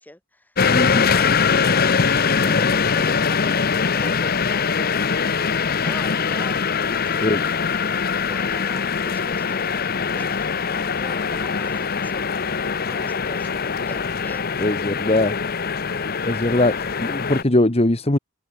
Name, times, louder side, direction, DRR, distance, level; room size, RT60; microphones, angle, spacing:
voice 1, 0.0-12.3 12.9-14.7, left 1 dB, 10° left, 6.0 m, -41 dB
sound 1, 0.6-17.4, left 6 dB, 45° left, 0.9 m, -22 dB
voice 2, 0.7-1.0 2.4-2.5 7.2-7.4 14.6-15.4 16.2-18.2, left 1 dB, 30° left, 1.3 m, -20 dB
head